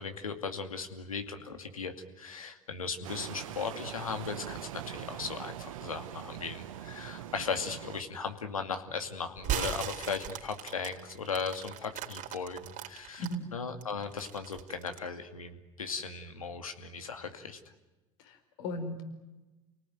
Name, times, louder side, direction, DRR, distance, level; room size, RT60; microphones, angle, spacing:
voice 1, 0.0-13.2 13.5-17.6, left 5 dB, 90° left, 7 dB, 2.4 m, -37 dB
sound 1, 3.0-8.0, right 12 dB, 75° right, 1.4 m, -42 dB
sound 2, 9.4-13.3 13.8-15.1, right 10 dB, 50° right, 4.1 m, -37 dB
voice 2, 18.2-19.0, equal, 70° left, 6 dB, 4.8 m, -37 dB
29.5 x 18.5 x 9.3 m, 1.1 s
hypercardioid pair, 75°, 17 cm